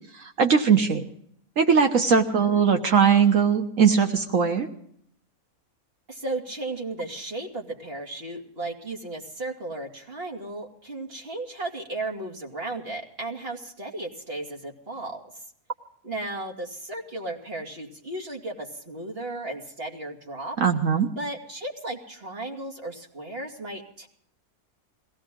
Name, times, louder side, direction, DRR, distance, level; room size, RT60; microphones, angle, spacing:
voice 1, 0.1-1.0 1.6-4.7 20.6-21.1, right 6 dB, 65° right, 5 dB, 1.6 m, -20 dB
voice 2, 6.1-15.2 16.0-20.6 21.1-24.1, right 2 dB, 45° right, 1 dB, 2.9 m, -35 dB
22.5 x 17.0 x 3.8 m, 0.65 s
omnidirectional pair, 1.5 m